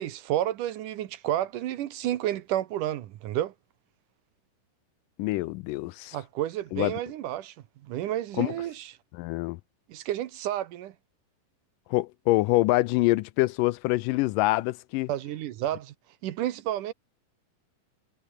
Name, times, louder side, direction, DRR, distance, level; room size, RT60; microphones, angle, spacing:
voice 1, 0.0-3.5 6.1-7.6 7.8-8.9 9.9-10.9 15.1-15.9 16.2-16.9, right 12 dB, 70° right, 2.5 m, -31 dB
voice 2, 5.2-6.2 6.7-6.9 8.4-8.5 9.2-9.6 11.9-15.1, left 19 dB, 80° left, 2.1 m, -25 dB
omnidirectional pair, 4.0 m